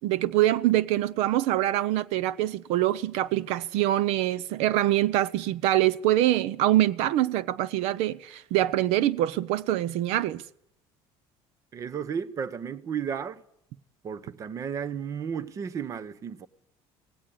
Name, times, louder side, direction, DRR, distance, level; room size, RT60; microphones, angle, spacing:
voice 1, 0.0-10.4, right 14 dB, 70° right, 0.7 m, -24 dB
voice 2, 11.7-13.4 14.0-16.5, right 7 dB, 30° right, 0.9 m, -33 dB
18.0 x 16.5 x 8.6 m
cardioid pair, 165°, 11 cm